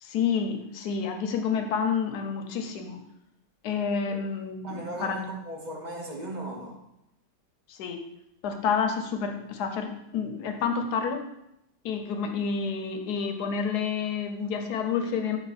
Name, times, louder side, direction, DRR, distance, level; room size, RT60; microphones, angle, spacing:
voice 1, 0.0-3.0 3.6-5.2 7.7-8.0 8.4-11.2 11.8-15.4, left 6 dB, 75° left, 6 dB, 1.2 m, -29 dB
voice 2, 4.6-6.8, right 2 dB, 35° right, 0 dB, 0.8 m, -37 dB
5.0 x 4.7 x 4.0 m, 0.82 s
omnidirectional pair, 1.8 m